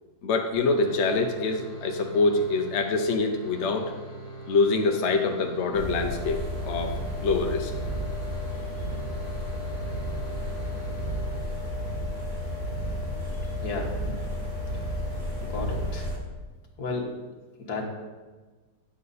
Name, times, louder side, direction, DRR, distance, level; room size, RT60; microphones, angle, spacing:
voice 1, 0.2-3.9 4.5-7.7, left 3 dB, 55° left, 3 dB, 1.0 m, -25 dB
sound 1, 0.5-11.9, right 1 dB, 75° right, 3.5 m, -42 dB
sound 2, 5.7-16.2, equal, 50° right, 2.3 m, -32 dB
voice 2, 13.6-14.2 15.4-16.1 16.8-17.2 17.6-17.9, left 3 dB, 70° left, 0 dB, 2.0 m, -33 dB
9.5 x 7.6 x 4.1 m, 1.3 s
omnidirectional pair, 1.7 m